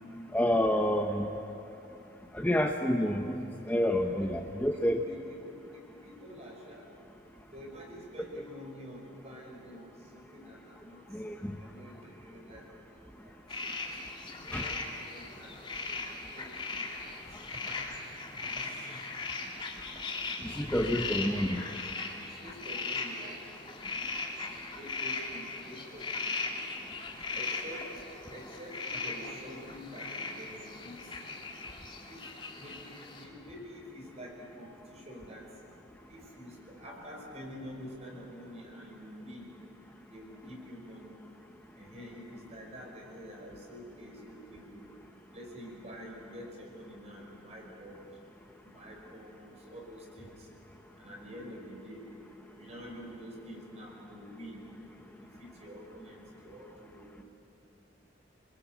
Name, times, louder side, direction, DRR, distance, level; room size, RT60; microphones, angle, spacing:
voice 1, 0.3-1.3 2.3-5.0 11.1-11.6 14.5-14.7 20.4-21.6, left 1 dB, 10° left, 3 dB, 0.8 m, -29 dB
voice 2, 4.9-5.6 6.0-6.9 7.5-11.0 11.6-12.8 13.2-13.4 14.4-16.1 16.3-17.2 18.6-19.0 22.2-23.4 24.7-26.3 27.3-27.8 28.3-31.0 32.0-32.2 32.6-35.5 36.1-39.5 40.1-41.2 41.8-44.8 45.3-48.1 48.6-50.5 51.0-52.0 52.6-54.6 55.1-57.2, equal, 35° right, 0 dB, 5.5 m, -47 dB
sound 1, 13.5-33.2, left 3 dB, 30° left, 2.8 m, -39 dB
28.0 x 21.5 x 8.2 m, 2.9 s
head